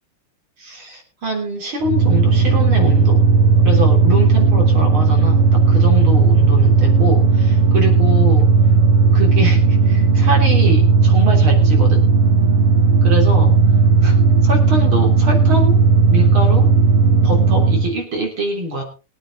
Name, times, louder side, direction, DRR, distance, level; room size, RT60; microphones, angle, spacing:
voice 1, 0.6-3.2 3.6-8.5 9.1-12.0 13.0-13.6 14.0-14.2 14.4-15.8 16.1-16.7 17.2-18.8, right 1 dB, 70° right, 1 dB, 4.3 m, -24 dB
sound 1, 1.8-17.9, right 4 dB, 90° right, 2.9 m, -14 dB
22.0 x 9.0 x 3.8 m, 0.33 s
omnidirectional pair, 2.4 m